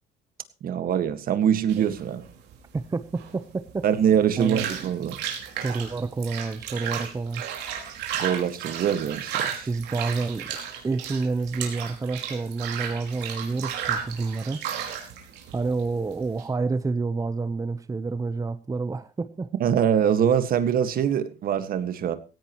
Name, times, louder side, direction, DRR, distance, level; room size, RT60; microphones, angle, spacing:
voice 1, 0.6-2.2 3.8-5.2 8.2-9.7 19.6-22.2, right 9 dB, 60° right, 1.8 m, -23 dB
sound 1, 1.7-16.5, right 8 dB, 85° right, 4.9 m, -34 dB
voice 2, 2.7-3.8 4.4-4.6 5.6-7.4 9.7-10.5 10.8-14.6 15.5-19.5, right 3 dB, 20° right, 0.9 m, -29 dB
17.5 x 16.5 x 3.1 m
cardioid pair, 110°, 17 cm